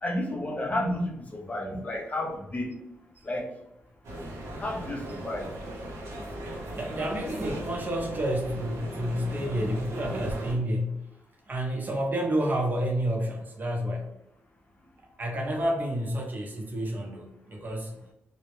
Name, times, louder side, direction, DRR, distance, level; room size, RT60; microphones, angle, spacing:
voice 1, 0.0-2.7 3.2-3.5 4.6-5.5, left 1 dB, 30° left, 0 dB, 0.6 m, -31 dB
sound 1, 4.0-10.5, right 1 dB, 80° right, 0.7 m, -37 dB
voice 2, 6.7-11.0 11.5-14.1 15.2-17.9, equal, 40° right, 1 dB, 0.6 m, -29 dB
2.1 x 2.0 x 3.0 m, 0.83 s
cardioid pair, 75°, 5 cm